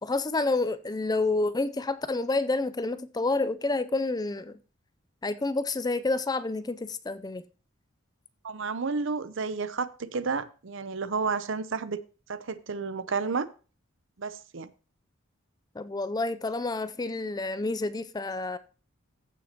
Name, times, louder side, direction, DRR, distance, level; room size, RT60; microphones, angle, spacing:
voice 1, 0.0-4.6 5.2-7.4 15.8-18.6, left 3 dB, 20° left, 0.4 m, -29 dB
voice 2, 8.4-12.0 12.3-13.5 14.2-14.7, right 4 dB, 60° right, 0.7 m, -31 dB
15.0 x 7.0 x 2.9 m
head